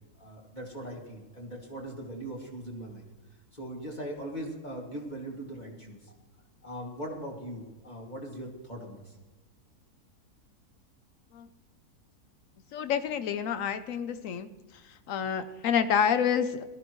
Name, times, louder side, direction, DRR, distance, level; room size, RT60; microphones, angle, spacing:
voice 1, 0.2-3.1 3.5-6.1 6.6-9.2, right 1 dB, 30° left, -2 dB, 2.5 m, -40 dB
voice 2, 12.7-14.5 14.9-16.6, left 8 dB, 60° left, 11 dB, 1.1 m, -28 dB
18.5 x 13.0 x 3.1 m, 1.2 s
omnidirectional pair, 1.7 m